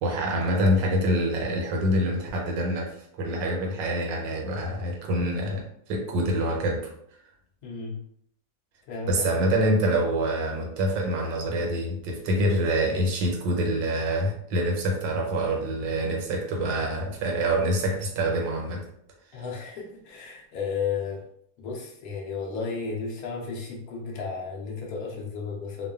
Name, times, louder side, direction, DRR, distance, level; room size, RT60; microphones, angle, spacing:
voice 1, 0.0-5.6 5.9-6.9 9.1-18.9, right 1 dB, 85° right, 1 dB, 1.3 m, -26 dB
voice 2, 7.6-8.0 8.9-9.3 19.3-21.3 21.6-25.9, left 5 dB, 70° left, -1 dB, 0.9 m, -33 dB
3.0 x 2.1 x 2.3 m, 0.68 s
omnidirectional pair, 1.9 m